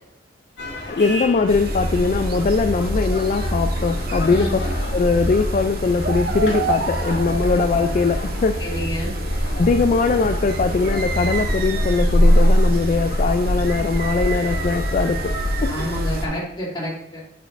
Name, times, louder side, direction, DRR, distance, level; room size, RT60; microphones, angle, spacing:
sound 1, 0.6-16.3, left 2 dB, 65° left, 1.8 m, -34 dB
voice 1, 0.9-4.7 4.9-8.6 9.6-15.3 15.6-15.7, left 4 dB, 40° left, 8 dB, 0.3 m, -21 dB
sound 2, 1.5-16.3, equal, 55° right, 0.7 m, -23 dB
voice 2, 8.6-9.1 15.7-17.2, equal, 25° left, -6 dB, 2.5 m, -29 dB
9.2 x 5.0 x 2.5 m, 0.77 s
head